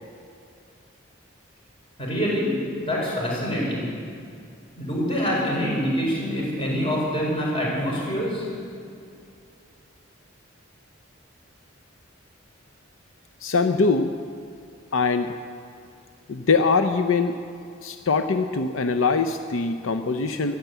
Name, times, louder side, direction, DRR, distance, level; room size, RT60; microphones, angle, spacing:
voice 1, 2.0-2.4 2.8-3.8 4.7-8.4, equal, 25° left, -4 dB, 5.1 m, -25 dB
voice 2, 13.4-14.1 14.9-15.3 16.3-17.4 17.8-20.6, left 4 dB, 80° left, 8 dB, 0.6 m, -22 dB
14.5 x 10.5 x 8.1 m, 2.5 s
head